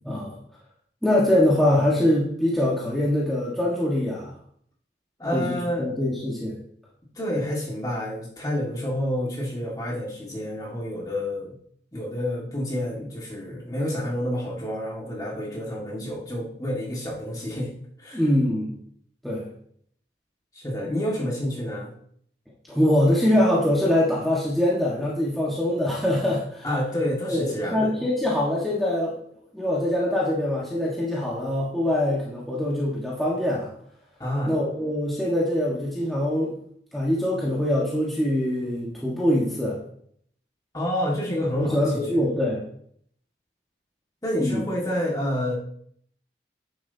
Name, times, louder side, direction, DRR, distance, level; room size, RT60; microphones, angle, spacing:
voice 1, 1.0-4.3 5.3-6.6 18.1-18.7 19.2-19.5 22.7-26.7 27.3-29.2 29.5-33.7 34.5-36.5 36.9-39.8 41.5-42.6 44.4-44.6, left 1 dB, ahead, -7 dB, 1.4 m, -23 dB
voice 2, 5.2-5.9 7.2-11.6 11.9-17.7 18.0-18.2 20.6-21.9 26.6-28.1 34.2-34.5 40.7-42.2 44.2-45.6, left 1 dB, 20° left, -3 dB, 1.9 m, -29 dB
9.8 x 7.4 x 2.8 m, 0.65 s
head